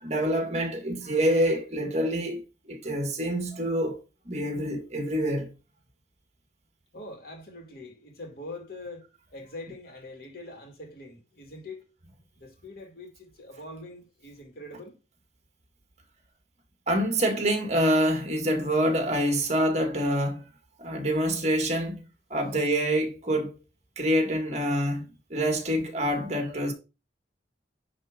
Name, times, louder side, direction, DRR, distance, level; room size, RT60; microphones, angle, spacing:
voice 1, 0.0-4.0 4.3-5.5 16.9-20.4 20.8-22.0 22.3-23.6 24.0-26.7, equal, 40° right, 2.1 m, -26 dB
voice 2, 6.9-9.1 9.3-11.9 12.4-15.0, left 2 dB, 60° left, 2.5 m, -43 dB
10.0 x 3.7 x 5.2 m
head